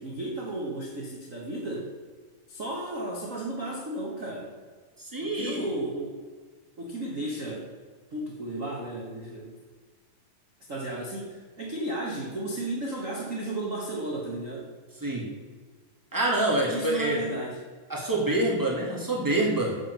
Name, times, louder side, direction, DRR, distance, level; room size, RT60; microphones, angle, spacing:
voice 1, 0.0-1.9 2.5-4.6 5.2-6.2 6.8-7.7 8.1-9.5 10.7-14.7 16.7-17.6, right 1 dB, 85° right, -2 dB, 0.7 m, -34 dB
voice 2, 5.0-5.7 15.0-15.3 16.1-17.2 17.9-19.8, right 1 dB, 20° right, -3 dB, 0.5 m, -26 dB
7.9 x 7.3 x 6.5 m, 1.5 s
omnidirectional pair, 3.8 m